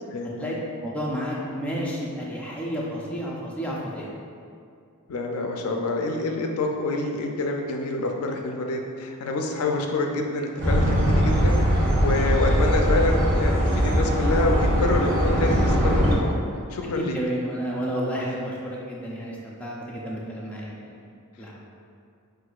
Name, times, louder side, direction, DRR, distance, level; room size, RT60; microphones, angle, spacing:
voice 1, 0.1-0.6 5.1-16.3 16.7-17.2, left 2 dB, 80° left, 2 dB, 0.4 m, -27 dB
voice 2, 0.8-4.1 16.9-20.9 21.4-21.6, equal, 5° left, -5 dB, 0.4 m, -31 dB
sound 1, 10.6-16.2, equal, 40° right, 1.3 m, -21 dB
5.9 x 2.6 x 2.3 m, 2.4 s
head